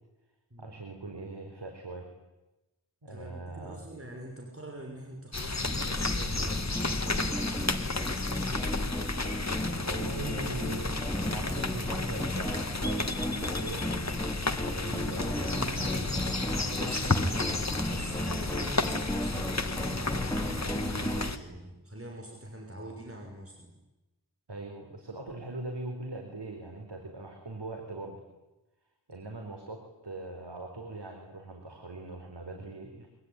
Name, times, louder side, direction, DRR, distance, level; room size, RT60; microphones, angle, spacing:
voice 1, 0.6-2.2 3.0-3.9 9.8-13.9 14.7-15.9 19.3-19.5 24.5-28.2 29.1-33.1, right 2 dB, 85° right, 4 dB, 4.1 m, -41 dB
voice 2, 3.1-8.1 15.1-16.4 16.7-23.7, right 1 dB, 35° right, 2 dB, 6.2 m, -44 dB
sound 1, 5.3-21.4, left 3 dB, 40° left, 1.8 m, -32 dB
sound 2, 5.6-21.3, equal, 10° left, 3.7 m, -35 dB
25.0 x 24.0 x 9.9 m, 1.0 s
wide cardioid pair, 50°, 40 cm